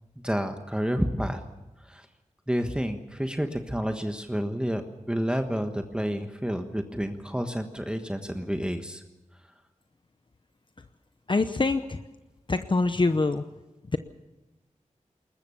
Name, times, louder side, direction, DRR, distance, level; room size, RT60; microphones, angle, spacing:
voice 1, 0.2-1.4 1.8-2.1 2.5-4.8 5.1-9.0, equal, 5° right, 6 dB, 1.3 m, -29 dB
voice 2, 11.3-12.0 12.5-13.4 13.8-14.0, left 3 dB, 40° left, 9 dB, 0.8 m, -25 dB
21.0 x 20.5 x 7.1 m, 1.1 s
wide cardioid pair, 90°, 13 cm